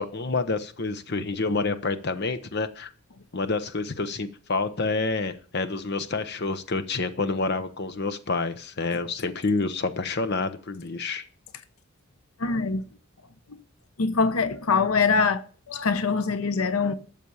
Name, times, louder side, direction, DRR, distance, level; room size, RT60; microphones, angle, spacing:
voice 1, 0.0-2.9 3.3-11.2, left 3 dB, 50° left, 0.9 m, -28 dB
voice 2, 12.4-12.8 13.5-13.6 14.0-16.9, left 4 dB, 90° left, 0.9 m, -24 dB
12.5 x 7.1 x 7.0 m
head